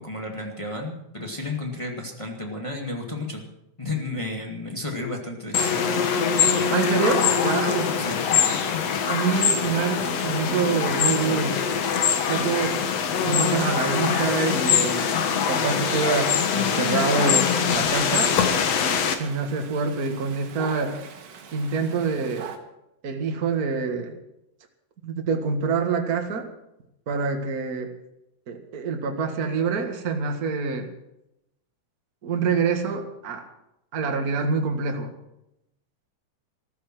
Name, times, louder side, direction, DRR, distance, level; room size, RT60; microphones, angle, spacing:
voice 1, 0.0-3.4 3.8-6.1 8.0-8.2, left 2 dB, 10° left, 1 dB, 1.7 m, -32 dB
sound 1, 5.5-19.2, left 7 dB, 60° left, 2.3 m, -23 dB
voice 2, 6.7-8.0 9.0-11.6 12.3-12.9 13.2-15.1 15.5-18.4 18.7-18.8 19.2-21.1 21.5-22.5 23.0-24.1 25.0-26.5 27.1-27.9 28.5-30.9 32.2-33.5 33.9-35.1, right 5 dB, 35° right, 4 dB, 1.8 m, -26 dB
Dog, 16.9-22.6, right 6 dB, 80° right, 3.1 m, -40 dB
14.5 x 14.5 x 6.1 m, 0.84 s
omnidirectional pair, 3.5 m